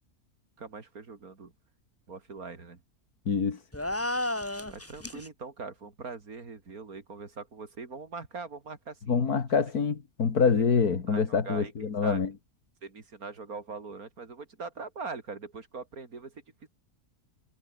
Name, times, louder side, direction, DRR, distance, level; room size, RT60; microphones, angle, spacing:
voice 1, 0.6-1.5 2.1-2.8 4.7-9.2 9.5-9.6 11.1-12.2 12.8-16.7, right 4 dB, 70° right, 3.3 m, -42 dB
voice 2, 3.3-3.6 9.1-12.3, left 5 dB, 80° left, 2.6 m, -25 dB
sound 1, 3.7-5.3, left 1 dB, 10° left, 1.5 m, -32 dB
omnidirectional pair, 1.6 m